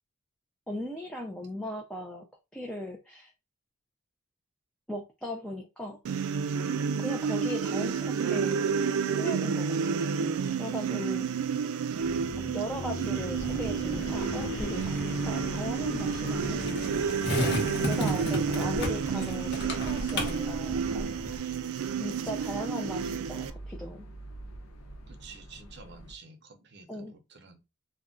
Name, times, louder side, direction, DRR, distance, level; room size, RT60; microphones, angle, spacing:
voice 1, 0.7-2.3 2.5-3.3 4.9-6.0 7.0-11.3 12.4-16.6 17.8-21.2 22.0-24.1 26.9-27.2, equal, 5° left, 0.3 m, -38 dB
sound 1, 6.1-23.5, right 6 dB, 90° right, 0.3 m, -30 dB
sound 2, 12.0-26.1, left 2 dB, 90° left, 0.7 m, -43 dB
Skateboard, 13.4-21.4, left 1 dB, 50° left, 0.8 m, -35 dB
voice 2, 25.1-27.6, right 4 dB, 50° right, 0.6 m, -50 dB
2.3 x 2.1 x 3.6 m
head